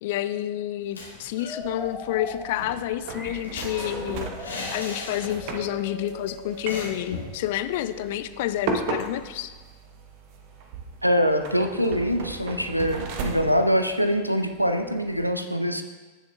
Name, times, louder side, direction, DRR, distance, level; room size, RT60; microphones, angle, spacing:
voice 1, 0.0-4.3 4.7-9.5, left 13 dB, 50° left, 12 dB, 0.4 m, -29 dB
sound 1, 0.8-1.6 1.9-2.0 2.3-5.7 6.0-6.1 6.7-7.4, left 3 dB, 75° left, 1.7 m, -38 dB
sound 2, 1.4-8.1, left 1 dB, 10° left, 1.3 m, -41 dB
sound 3, 1.6-15.2, right 4 dB, 45° right, 1.0 m, -37 dB
voice 2, 11.0-15.8, equal, 90° right, 7 dB, 0.6 m, -24 dB
16.5 x 6.5 x 2.3 m, 1.3 s
figure-of-eight pair, 90°, 0 cm